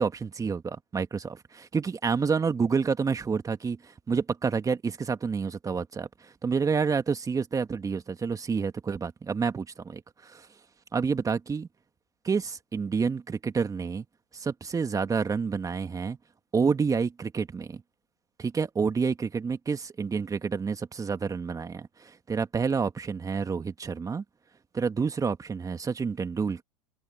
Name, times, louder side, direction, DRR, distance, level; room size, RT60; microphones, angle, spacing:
voice 1, 0.0-10.5 10.9-11.7 12.2-14.1 14.3-16.2 16.5-17.8 18.4-24.2 24.7-26.6, right 5 dB, 20° right, 1.9 m, -29 dB
hypercardioid pair, 100°, 18 cm